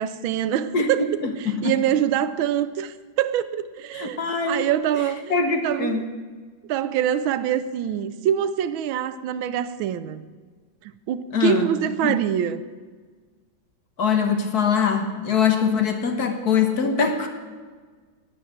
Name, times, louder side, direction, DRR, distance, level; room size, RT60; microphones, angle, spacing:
voice 1, 0.0-4.2 4.5-5.3 5.6-6.0 6.7-10.2 10.8-12.6, right 10 dB, 80° right, 14 dB, 1.5 m, -25 dB
voice 2, 0.7-1.8 3.9-4.7 5.3-6.1 11.3-11.7 12.0-12.2 14.0-17.3, left 6 dB, 55° left, 6 dB, 1.6 m, -23 dB
11.5 x 9.5 x 7.8 m, 1.5 s
omnidirectional pair, 2.2 m